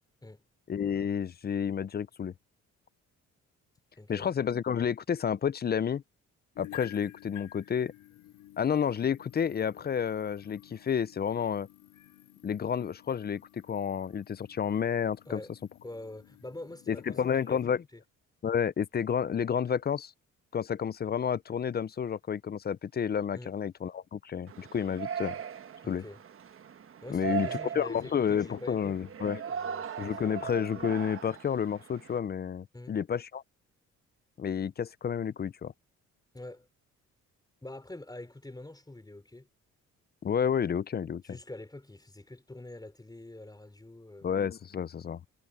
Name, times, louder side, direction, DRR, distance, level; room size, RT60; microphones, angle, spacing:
voice 1, 0.7-2.3 4.1-6.0 6.6-7.9 8.6-11.7 12.4-15.4 16.9-17.8 18.4-20.1 20.5-25.4 25.9-26.0 27.1-27.5 27.7-29.4 30.0-33.4 34.4-35.7 40.2-41.2 44.2-45.2, left 7 dB, 35° left, 0.5 m, -30 dB
voice 2, 4.0-4.3 15.3-15.5 15.8-17.6 17.9-18.0 23.3-23.5 25.8-26.2 27.0-28.9 29.5-30.5 32.7-33.0 36.3-36.7 37.6-39.5 41.2-44.3, left 2 dB, 15° left, 4.6 m, -45 dB
sound 1, 6.5-17.6, left 14 dB, 90° left, 3.5 m, -52 dB
Yell, 24.5-32.2, right 8 dB, 45° right, 1.2 m, -39 dB
cardioid pair, 90°, 30 cm